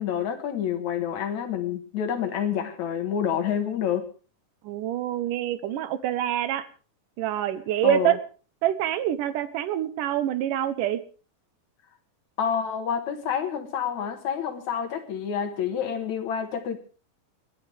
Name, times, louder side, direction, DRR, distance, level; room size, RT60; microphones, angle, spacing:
voice 1, 0.0-4.1 7.8-8.2 12.4-16.8, left 8 dB, 65° left, 7 dB, 2.7 m, -28 dB
voice 2, 4.6-6.7 7.2-8.2 8.6-11.0, right 12 dB, 80° right, 14 dB, 2.4 m, -26 dB
29.5 x 10.5 x 3.4 m, 0.36 s
omnidirectional pair, 3.7 m